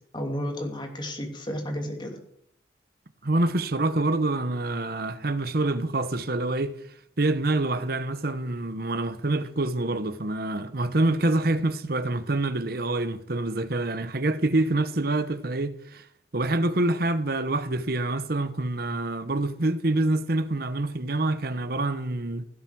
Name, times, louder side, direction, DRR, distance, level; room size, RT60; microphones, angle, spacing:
voice 1, 0.1-2.2, equal, 25° left, 2.7 m, -32 dB
voice 2, 3.2-6.8 7.2-16.0 16.3-22.4, right 2 dB, 55° right, 1.0 m, -26 dB
16.5 x 8.2 x 6.1 m
head